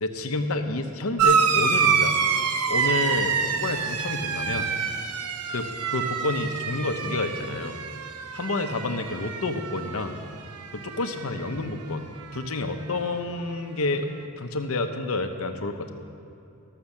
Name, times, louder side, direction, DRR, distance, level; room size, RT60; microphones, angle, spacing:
voice 1, 0.0-2.2 2.7-4.7 5.5-7.8 8.3-10.2 10.7-14.1 14.4-15.9, left 2 dB, 65° left, 6 dB, 0.8 m, -29 dB
sound 1, 1.2-10.2 10.5-11.2 12.3-12.4, right 6 dB, 90° right, 0.7 m, -26 dB
13.5 x 6.6 x 7.2 m, 2.8 s
head